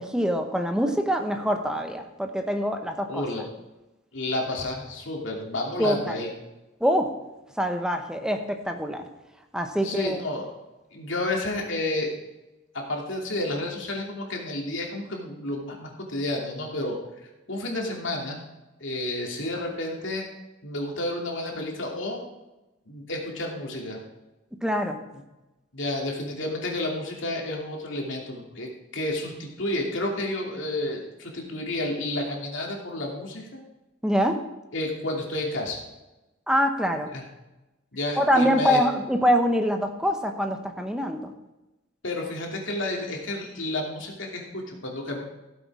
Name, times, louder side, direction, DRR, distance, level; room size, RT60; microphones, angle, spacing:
voice 1, 0.0-3.2 5.8-6.2 6.8-7.1 7.6-9.0 9.5-10.2 24.6-25.0 34.0-34.4 36.5-37.1 38.2-41.3, equal, 5° right, 5 dB, 1.0 m, -24 dB
voice 2, 3.1-3.4 4.1-6.3 9.8-10.5 10.9-12.1 12.7-17.0 17.5-18.4 18.8-20.3 20.6-22.3 22.9-24.0 25.7-33.6 34.7-35.8 37.1-37.2 37.9-38.8 42.0-45.2, left 1 dB, 65° left, 0 dB, 2.8 m, -31 dB
16.0 x 7.9 x 4.8 m, 1.0 s
head